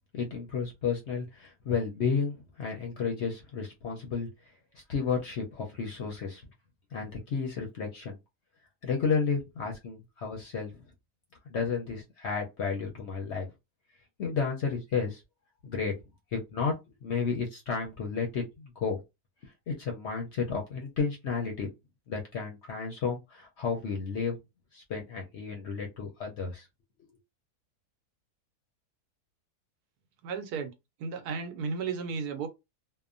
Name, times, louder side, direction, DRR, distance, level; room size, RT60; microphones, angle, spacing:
voice 1, 0.1-4.3 4.7-6.4 6.9-8.2 8.8-10.7 11.5-13.5 14.2-15.2 15.6-15.9 16.3-16.7 17.0-19.0 19.4-21.7 22.1-24.4 24.7-26.7, left 5 dB, 60° left, 0.7 m, -32 dB
voice 2, 30.2-30.7 31.0-32.5, right 5 dB, 80° right, 1.1 m, -34 dB
2.9 x 2.0 x 2.5 m
omnidirectional pair, 1.7 m